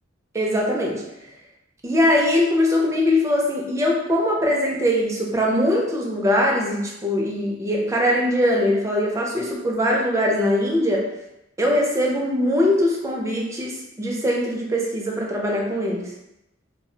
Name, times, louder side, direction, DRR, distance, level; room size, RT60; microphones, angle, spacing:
voice 1, 0.3-1.0 1.8-11.1 11.6-16.1, left 1 dB, 15° right, -2 dB, 0.4 m, -21 dB
2.3 x 2.1 x 3.7 m, 0.89 s
head